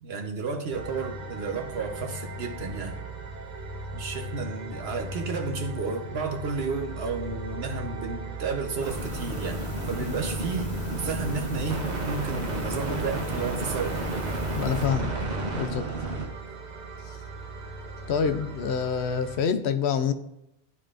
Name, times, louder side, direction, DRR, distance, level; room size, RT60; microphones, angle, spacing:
voice 1, 0.0-3.0 3.9-14.0, right 4 dB, 70° right, 4 dB, 1.2 m, -32 dB
sound 1, 0.7-19.4, right 2 dB, 45° right, 0.9 m, -36 dB
sound 2, 8.8-14.9, left 6 dB, 35° left, 0.7 m, -39 dB
sound 3, 8.8-16.3, right 2 dB, 85° right, 1.4 m, -34 dB
voice 2, 14.6-15.1 15.6-15.9 18.1-20.1, left 7 dB, 85° left, 9 dB, 0.9 m, -26 dB
11.5 x 4.2 x 2.5 m, 0.85 s
omnidirectional pair, 1.1 m